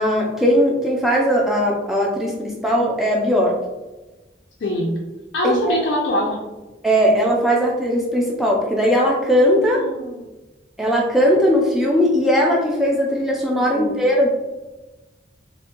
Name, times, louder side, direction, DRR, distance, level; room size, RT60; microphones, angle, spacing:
voice 1, 0.0-3.6 5.4-5.8 6.8-9.9 10.8-14.3, equal, ahead, -3 dB, 0.4 m, -18 dB
voice 2, 4.6-5.0 5.3-6.5 9.8-10.3 13.6-14.0, left 1 dB, 80° left, -3 dB, 0.4 m, -23 dB
2.5 x 2.2 x 2.9 m, 1.1 s
head